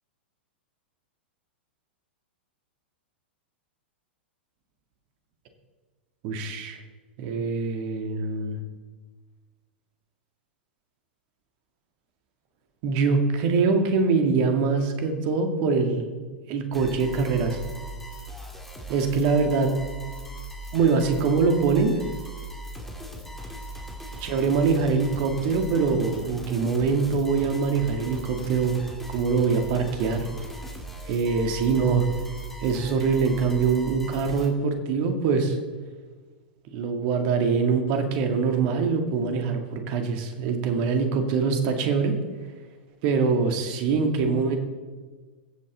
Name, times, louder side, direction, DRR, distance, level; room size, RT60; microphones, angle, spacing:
voice 1, 6.2-6.8 7.2-8.6 12.8-17.6 18.9-19.7 20.7-21.9 24.2-28.8 29.1-30.3 31.1-32.1 32.6-35.6 36.7-42.2 43.0-44.6, right 5 dB, 45° right, 5 dB, 2.0 m, -24 dB
sound 1, 16.7-34.5, right 1 dB, 5° left, 2.4 m, -39 dB
21.5 x 7.6 x 4.0 m, 1.4 s
figure-of-eight pair, 100°, 6 cm